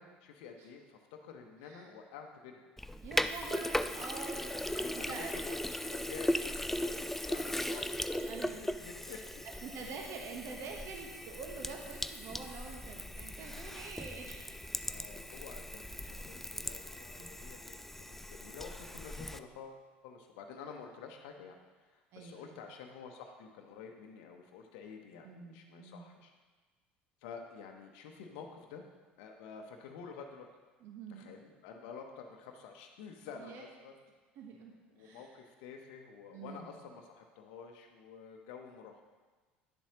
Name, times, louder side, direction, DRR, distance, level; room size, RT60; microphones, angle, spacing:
voice 1, 0.0-2.7 4.8-8.5 8.8-9.4 9.7-9.9 14.8-26.3 27.2-28.8 29.2-30.5 31.1-33.9 34.9-39.0, left 6 dB, 70° left, 3 dB, 0.8 m, -50 dB
Sink (filling or washing), 2.8-19.4, left 1 dB, 5° left, 0.3 m, -38 dB
voice 2, 3.0-5.4 7.5-7.8 8.2-8.7 9.0-9.2 9.6-14.5 15.4-15.5 17.2-17.4 22.1-22.6 25.2-26.1 30.8-31.3 33.3-33.6 34.4-35.3 36.3-36.7, right 4 dB, 55° right, 1 dB, 1.1 m, -46 dB
10.0 x 7.1 x 2.9 m, 1.4 s
hypercardioid pair, 70°, 6 cm